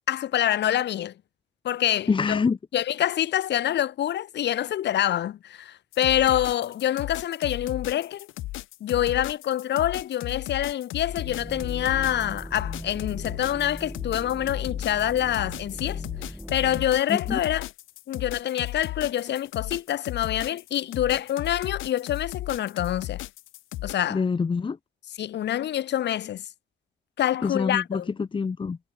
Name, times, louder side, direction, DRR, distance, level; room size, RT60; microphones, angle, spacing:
voice 1, 0.1-1.1 1.6-2.4 2.7-8.3 8.8-16.0 16.5-17.7 18.1-23.2 23.8-24.2 25.2-26.4 27.2-28.1, left 11 dB, 60° left, 3.1 m, -26 dB
voice 2, 2.1-2.6 17.1-17.4 24.1-24.8 27.4-28.8, left 5 dB, 25° left, 1.4 m, -26 dB
sound 1, 5.9-23.9, left 17 dB, 80° left, 2.2 m, -35 dB
sound 2, 11.1-16.9, equal, ahead, 5.4 m, -39 dB
cardioid pair, 120°, 20 cm